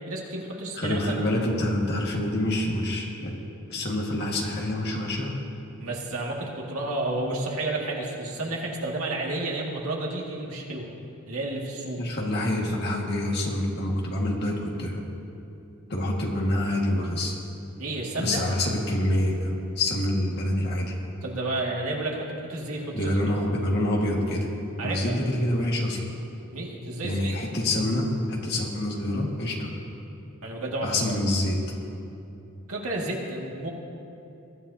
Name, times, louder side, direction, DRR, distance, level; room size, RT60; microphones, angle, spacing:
voice 1, 0.1-1.2 5.8-10.9 11.3-12.0 17.8-18.4 21.2-23.1 24.8-25.1 26.5-27.4 30.4-30.9 32.7-33.7, right 2 dB, 75° right, -2 dB, 2.1 m, -31 dB
voice 2, 0.8-3.4 3.7-5.3 12.0-15.0 15.9-17.4 18.2-20.9 22.9-24.5 24.8-26.0 27.0-29.7 30.8-31.6, left 1 dB, 45° left, -1 dB, 1.8 m, -26 dB
22.0 x 12.5 x 2.8 m, 2.7 s
head